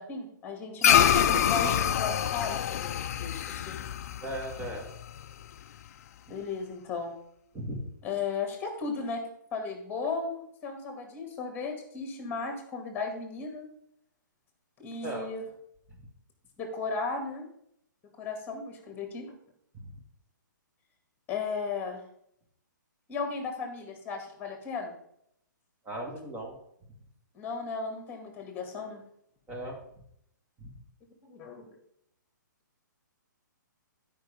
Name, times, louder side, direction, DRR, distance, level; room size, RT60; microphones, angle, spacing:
voice 1, 0.0-3.4 3.7-3.8 6.3-7.1 8.0-9.2 9.5-13.7 14.8-15.4 16.6-17.5 18.2-19.3 21.3-22.0 23.1-25.0 27.3-29.0 31.2-31.7, left 4 dB, 15° left, 5 dB, 2.1 m, -35 dB
sound 1, 0.8-5.4, left 9 dB, 50° left, 0.5 m, -26 dB
voice 2, 4.2-4.9 7.5-7.8 15.0-15.3 15.9-16.0 19.7-20.0 25.9-26.6 29.5-29.8 30.6-30.7, right 1 dB, 15° right, 0 dB, 2.0 m, -37 dB
11.0 x 5.4 x 5.2 m, 0.72 s
hypercardioid pair, 145°, 11 cm